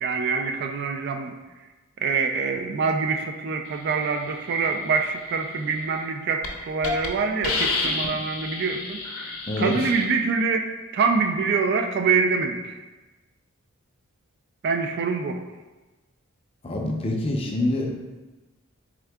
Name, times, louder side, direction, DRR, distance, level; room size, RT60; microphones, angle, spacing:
voice 1, 0.0-1.3 2.0-10.7 10.9-12.8 14.6-15.4, right 4 dB, 50° right, 5 dB, 0.3 m, -25 dB
Hiss, 5.8-6.1 6.4-6.5 6.8-7.1 7.4-10.0, left 3 dB, 85° left, 0.6 m, -29 dB
voice 2, 9.5-9.9 16.6-18.0, left 1 dB, 25° left, 1 dB, 0.5 m, -26 dB
3.6 x 3.6 x 3.4 m, 1.2 s
head